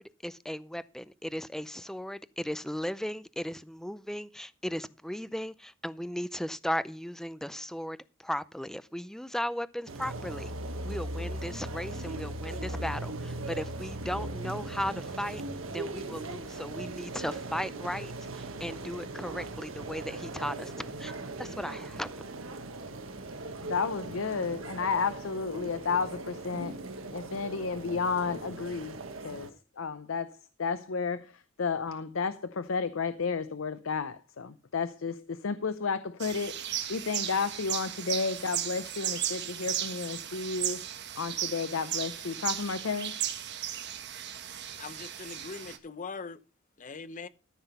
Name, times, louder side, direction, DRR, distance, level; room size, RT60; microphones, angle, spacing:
voice 1, 0.0-10.5 10.8-15.4 15.7-21.1 21.4-22.2, equal, ahead, 0.4 m, -36 dB
sound 1, 9.9-29.5, right 2 dB, 85° right, 1.5 m, -39 dB
voice 2, 23.6-26.8 27.1-29.0 29.2-40.9 41.2-43.2, left 5 dB, 85° left, 0.6 m, -32 dB
sound 2, 36.2-45.8, right 10 dB, 60° right, 1.3 m, -35 dB
voice 3, 44.7-46.4 46.8-47.3, left 4 dB, 40° left, 0.7 m, -41 dB
13.5 x 6.1 x 5.4 m
head